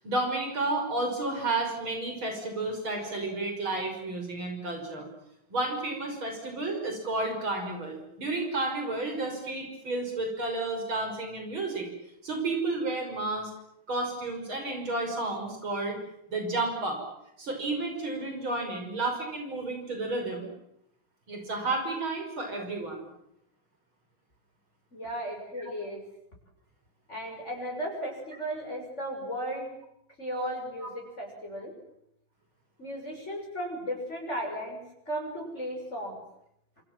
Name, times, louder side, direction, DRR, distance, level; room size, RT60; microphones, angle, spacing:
voice 1, 0.0-5.1 5.5-11.9 12.2-13.5 13.9-16.0 16.3-17.0 17.4-20.5 21.3-23.0 30.8-30.9, right 2 dB, 80° right, 3 dB, 6.6 m, -31 dB
voice 2, 24.9-26.0 27.1-29.7 30.2-31.7 32.8-34.8 35.1-36.2, equal, 35° left, 0 dB, 6.7 m, -35 dB
27.5 x 27.0 x 7.6 m, 0.79 s
omnidirectional pair, 2.2 m